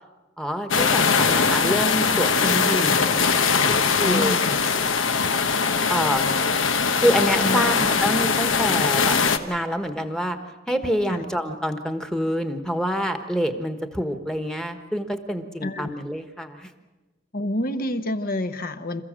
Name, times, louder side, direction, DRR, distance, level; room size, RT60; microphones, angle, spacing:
voice 1, 0.4-3.2 4.0-4.4 5.9-6.3 7.0-9.2 9.4-10.4 10.7-16.7, equal, 5° left, 7 dB, 1.3 m, -26 dB
sound 1, 0.7-9.4, left 5 dB, 85° left, 1.2 m, -21 dB
voice 2, 4.0-4.6 7.4-7.9 11.1-11.2 15.6-15.9 17.3-19.0, left 1 dB, 50° left, 9 dB, 1.1 m, -28 dB
27.5 x 15.0 x 7.5 m, 1.2 s
head